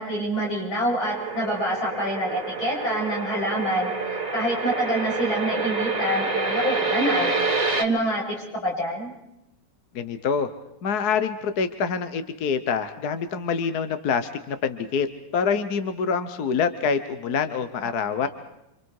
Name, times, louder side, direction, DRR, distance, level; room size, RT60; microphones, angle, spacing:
voice 1, 0.0-7.4 7.8-9.1 18.2-18.3, equal, 75° left, -3 dB, 8.4 m, -27 dB
sound 1, 1.0-7.8, right 3 dB, 20° right, 1.6 m, -27 dB
voice 2, 9.9-10.5 10.8-15.1 15.3-18.3, left 6 dB, 55° left, 10 dB, 1.4 m, -26 dB
29.0 x 26.0 x 4.8 m, 0.84 s
omnidirectional pair, 2.2 m